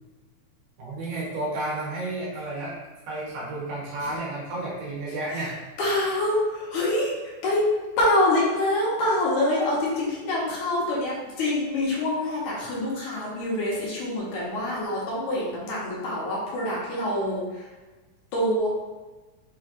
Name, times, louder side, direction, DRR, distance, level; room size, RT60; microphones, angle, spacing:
voice 1, 0.8-2.8 3.1-5.5, right 2 dB, 85° right, -6 dB, 3.0 m, -31 dB
voice 2, 5.8-7.7 8.0-17.7 18.3-18.7, left 1 dB, 70° left, -6 dB, 2.5 m, -26 dB
6.3 x 3.2 x 2.5 m, 1.2 s
omnidirectional pair, 3.8 m